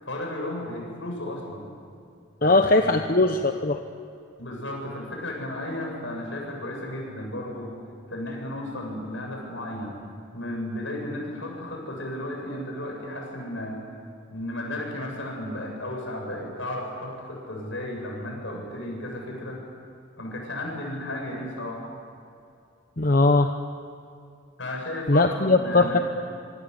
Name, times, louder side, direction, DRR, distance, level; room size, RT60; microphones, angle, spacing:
voice 1, 0.0-1.7 2.4-3.1 4.4-7.7 8.1-10.0 10.3-13.8 14.3-19.6 20.2-21.9 24.6-26.0, left 1 dB, 70° left, 1 dB, 7.9 m, -34 dB
voice 2, 2.4-3.8 23.0-23.5 25.1-26.0, left 2 dB, 45° left, 5 dB, 1.0 m, -20 dB
26.0 x 25.0 x 8.3 m, 2.5 s
head